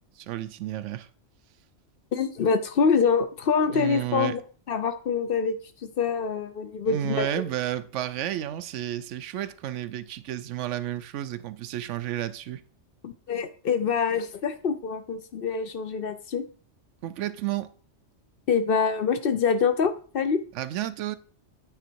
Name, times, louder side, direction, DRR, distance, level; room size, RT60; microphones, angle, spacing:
voice 1, 0.2-1.1 3.7-4.4 6.9-12.6 17.0-17.7 20.5-21.2, right 12 dB, 85° right, 0.9 m, -31 dB
voice 2, 2.1-4.4 4.7-7.5 13.0-16.4 18.5-20.4, left 5 dB, 55° left, 0.8 m, -25 dB
9.0 x 4.0 x 4.5 m
omnidirectional pair, 1.2 m